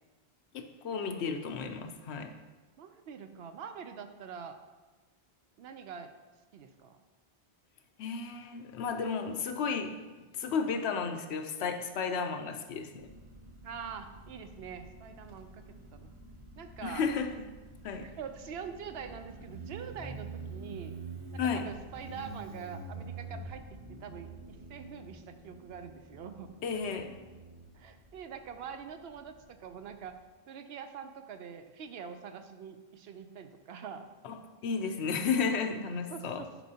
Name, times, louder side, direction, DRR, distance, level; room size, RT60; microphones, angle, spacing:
voice 1, 0.5-2.3 8.0-13.1 16.8-17.5 17.8-18.1 21.4-21.6 26.6-27.2 34.2-34.4 34.6-36.5, left 5 dB, 85° left, 6 dB, 0.9 m, -33 dB
voice 2, 2.8-4.6 5.6-6.1 6.5-7.0 13.6-15.6 15.9-16.1 16.6-17.1 18.0-20.9 21.3-23.6 23.9-26.5 27.7-30.2 30.5-34.1 36.1-36.6, right 7 dB, 75° right, 8 dB, 0.8 m, -44 dB
Motorcycle, 13.0-30.2, right 3 dB, 35° right, 0.6 m, -47 dB
10.0 x 4.5 x 2.8 m, 1.2 s
omnidirectional pair, 1.1 m